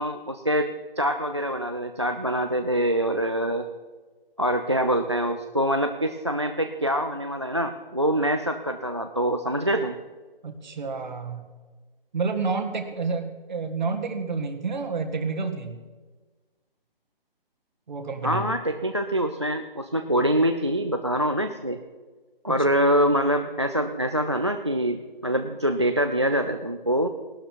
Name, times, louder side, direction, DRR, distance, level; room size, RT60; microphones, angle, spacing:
voice 1, 0.0-3.6 4.4-10.0 18.2-21.8 22.4-27.1, equal, 30° right, 7 dB, 0.4 m, -25 dB
voice 2, 10.4-11.5 12.1-15.8 17.9-18.5 20.2-20.3 22.5-22.7, right 4 dB, 50° right, 6 dB, 1.7 m, -29 dB
18.0 x 12.0 x 4.6 m, 1.4 s
hypercardioid pair, 165°, 30 cm